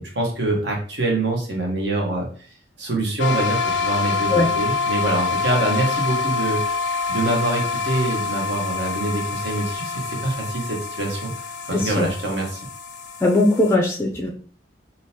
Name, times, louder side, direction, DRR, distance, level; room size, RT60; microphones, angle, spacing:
voice 1, 0.0-2.3 2.8-6.6 7.1-11.3 11.7-12.6, right 2 dB, 70° right, -1 dB, 1.1 m, -25 dB
sound 1, 3.2-13.7, left 4 dB, 90° left, 0.4 m, -26 dB
voice 2, 11.7-12.1 13.2-14.3, left 2 dB, 15° left, 1 dB, 0.4 m, -19 dB
3.7 x 2.7 x 2.7 m, 0.44 s
head